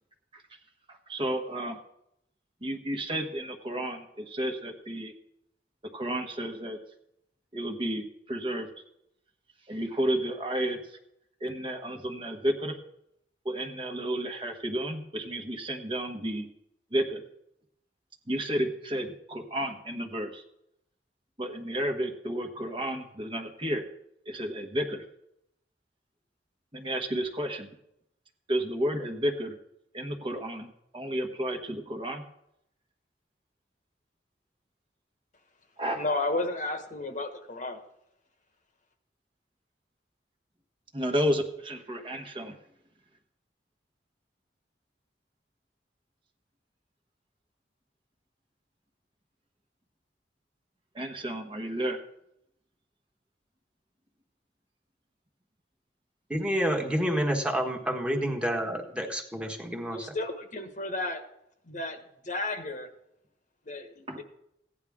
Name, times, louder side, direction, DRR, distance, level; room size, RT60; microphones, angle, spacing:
voice 1, 0.9-1.8 2.6-5.1 5.9-6.8 7.5-8.7 9.7-11.0 11.4-12.8 13.4-16.5 16.9-17.2 18.3-20.4 21.4-23.8 24.3-25.0 26.7-27.7 28.5-29.6 29.9-32.2 35.8-36.1 40.9-42.6 50.9-52.0 64.1-64.2, right 1 dB, 30° right, 4 dB, 1.2 m, -32 dB
voice 2, 35.9-37.8 59.9-61.2 61.7-62.0 62.2-62.9 63.7-64.2, left 2 dB, 45° left, 6 dB, 1.3 m, -32 dB
voice 3, 56.3-60.2, equal, 5° right, 1 dB, 1.4 m, -29 dB
16.0 x 9.9 x 3.6 m, 0.77 s
head